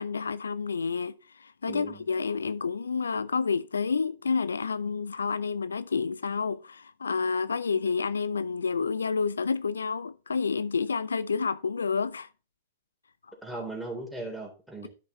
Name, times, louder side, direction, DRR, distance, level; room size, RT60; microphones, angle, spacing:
voice 1, 0.0-12.3, left 5 dB, 75° left, 0.3 m, -29 dB
voice 2, 1.7-2.0 13.4-14.9, right 2 dB, 5° right, 3.1 m, -37 dB
12.5 x 5.7 x 3.0 m
figure-of-eight pair, 105°, 0 cm